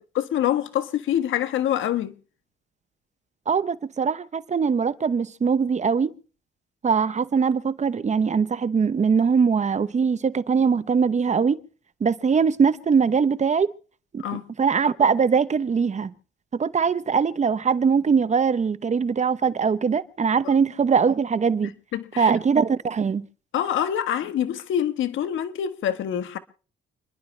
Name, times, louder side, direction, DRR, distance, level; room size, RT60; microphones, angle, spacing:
voice 1, 0.1-2.1 14.2-14.4 20.4-20.5 21.6-22.3 23.5-26.4, left 10 dB, 75° left, 1.5 m, -26 dB
voice 2, 3.5-6.1 6.8-11.6 12.0-13.7 14.1-14.2 14.6-16.1 16.6-21.7 22.2-23.2, right 6 dB, 35° right, 0.9 m, -21 dB
30.0 x 11.0 x 3.3 m
cardioid pair, 90°, 20 cm